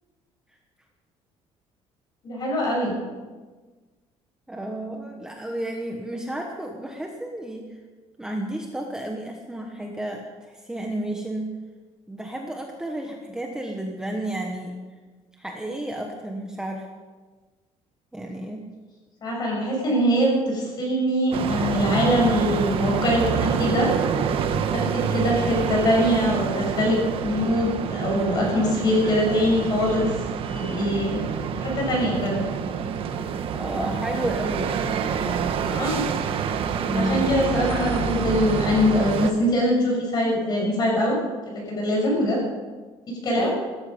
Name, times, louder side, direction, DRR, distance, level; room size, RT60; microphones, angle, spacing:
voice 1, 2.2-2.9 19.2-23.9 24.7-27.0 27.2-30.1 30.5-31.2 31.6-32.4 35.6-36.0 36.9-41.2 41.5-42.4 43.2-43.5, equal, 35° left, -1 dB, 6.7 m, -23 dB
voice 2, 4.5-7.7 8.2-11.5 12.1-14.8 15.4-16.9 18.1-18.6 33.5-35.4 36.9-37.2 43.3-43.5, right 1 dB, 5° right, 1 dB, 1.1 m, -31 dB
sound 1, 21.3-39.3, right 7 dB, 55° right, 1.2 m, -27 dB
17.0 x 13.5 x 5.3 m, 1.4 s
cardioid pair, 165°, 11 cm